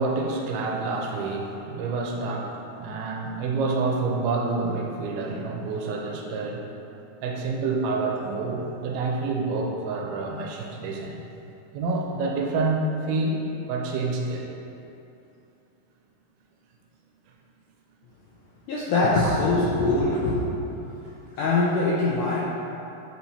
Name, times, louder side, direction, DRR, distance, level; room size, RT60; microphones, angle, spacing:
voice 1, 0.0-6.8 7.2-11.2 11.7-13.4 13.7-14.5 19.2-19.3, right 3 dB, 90° right, 1 dB, 2.6 m, -28 dB
voice 2, 18.7-20.5 21.4-22.4, left 2 dB, 80° left, -5 dB, 1.8 m, -22 dB
8.4 x 4.5 x 4.2 m, 2.8 s
omnidirectional pair, 4.4 m